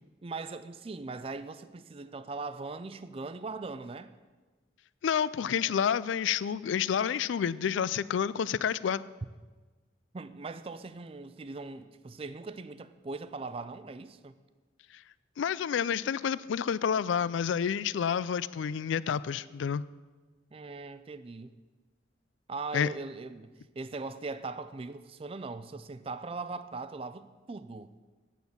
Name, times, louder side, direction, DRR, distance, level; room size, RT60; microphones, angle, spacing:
voice 1, 0.2-4.1 10.1-14.4 20.5-21.6 22.5-27.9, right 3 dB, 30° right, 0.4 m, -40 dB
voice 2, 5.0-9.0 15.4-19.8 22.7-22.9, left 7 dB, 80° left, 0.3 m, -29 dB
9.3 x 8.0 x 7.0 m
head